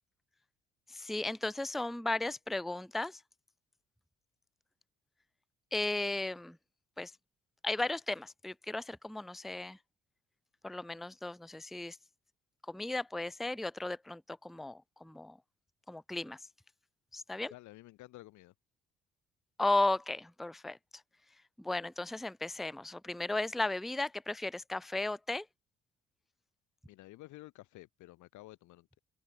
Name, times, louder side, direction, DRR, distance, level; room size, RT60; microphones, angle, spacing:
voice 1, 0.9-3.2 5.7-6.6 7.0-7.1 7.6-9.8 10.6-12.0 12.7-15.4 15.9-16.4 17.1-17.5 19.6-20.8 21.6-25.5, left 2 dB, ahead, 0.4 m, -35 dB
voice 2, 17.5-18.5 26.9-29.0, left 18 dB, 65° left, 2.4 m, -52 dB
open air
hypercardioid pair, 50°, 32 cm